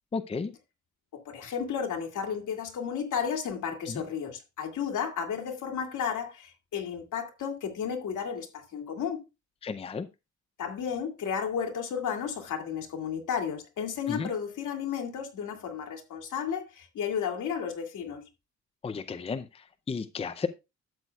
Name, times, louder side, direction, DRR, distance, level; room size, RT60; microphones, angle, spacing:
voice 1, 0.1-0.5 3.9-4.0 9.6-10.1 14.1-14.3 18.8-20.5, left 5 dB, 20° left, 0.5 m, -33 dB
voice 2, 1.1-9.2 10.6-18.3, left 7 dB, 85° left, 2.3 m, -33 dB
12.0 x 7.9 x 2.3 m
wide cardioid pair, 160°, 30 cm